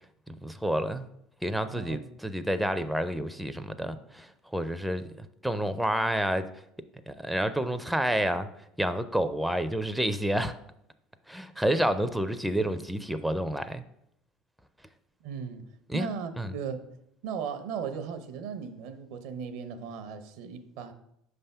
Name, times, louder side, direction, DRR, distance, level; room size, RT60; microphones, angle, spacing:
voice 1, 0.4-1.1 1.4-6.5 7.1-8.5 8.8-10.5 11.3-13.8 15.9-16.1 16.4-16.5, right 1 dB, 5° right, 0.4 m, -29 dB
voice 2, 15.2-15.7 15.9-16.8 17.2-20.9, right 6 dB, 70° right, 0.6 m, -37 dB
5.3 x 3.4 x 5.5 m
hypercardioid pair, 80°, 0 cm